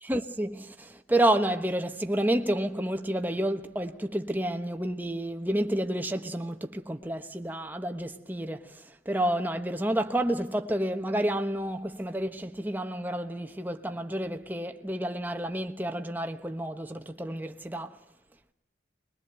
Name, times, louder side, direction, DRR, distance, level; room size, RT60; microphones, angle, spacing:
voice 1, 0.0-18.0, right 1 dB, 10° right, 1.1 m, -30 dB
22.5 x 21.5 x 8.0 m
head